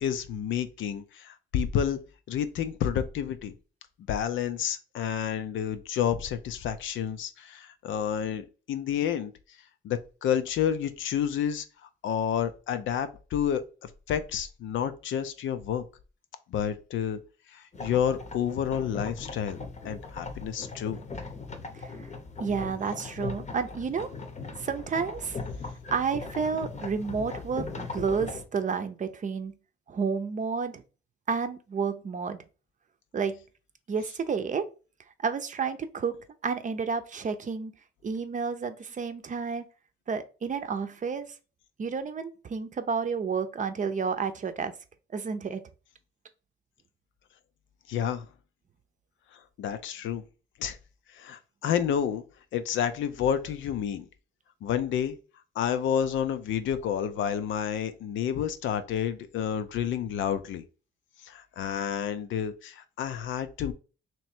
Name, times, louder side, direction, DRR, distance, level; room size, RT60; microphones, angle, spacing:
voice 1, 0.0-2.0 2.3-3.5 4.1-9.3 9.8-11.7 12.0-15.8 16.5-17.2 17.5-19.6 19.8-21.0 47.9-48.3 49.6-50.2 50.6-50.8 51.1-52.2 52.5-54.0 54.6-55.2 55.6-60.6 61.2-63.7, left 8 dB, 75° left, 0.6 m, -30 dB
sound 1, 17.7-28.4, left 4 dB, 35° left, 0.8 m, -39 dB
voice 2, 22.4-24.1 24.6-25.4 25.9-29.5 29.9-30.8 31.3-32.4 33.1-33.4 33.9-34.7 35.2-36.1 36.4-37.7 38.0-39.6 40.1-41.3 41.8-44.7 45.1-45.6, right 5 dB, 40° right, 0.6 m, -30 dB
3.2 x 3.0 x 4.3 m
cardioid pair, 90°, 20 cm